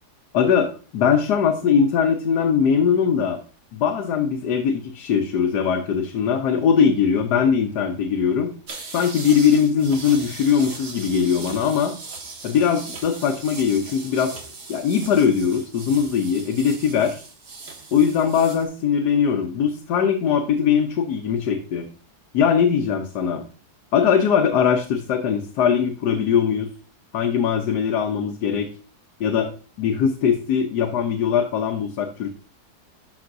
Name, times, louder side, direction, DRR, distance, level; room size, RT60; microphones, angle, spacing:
voice 1, 0.3-3.4 3.7-8.5 8.9-12.0 12.4-14.4 14.7-17.2 17.9-21.9 22.3-23.4 23.9-26.7 27.1-28.7 29.2-29.5 29.8-32.3, left 7 dB, 85° left, 4 dB, 1.4 m, -21 dB
sound 1, 8.7-18.7, right 3 dB, 75° right, 2.1 m, -39 dB
12.0 x 5.3 x 2.6 m, 0.38 s
omnidirectional pair, 1.7 m